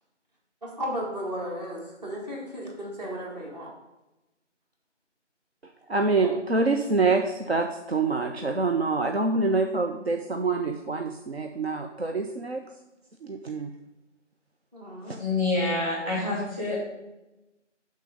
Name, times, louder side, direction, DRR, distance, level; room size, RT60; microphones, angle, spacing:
voice 1, 0.6-3.7 6.2-6.3 14.7-15.1, equal, 35° right, -2 dB, 1.9 m, -34 dB
voice 2, 5.9-12.6 13.2-13.7 15.1-15.2, right 3 dB, 55° right, 4 dB, 0.6 m, -26 dB
voice 3, 15.2-16.7, left 2 dB, 15° right, -7 dB, 2.2 m, -27 dB
10.5 x 3.9 x 5.1 m, 1.0 s
figure-of-eight pair, 165°, 37 cm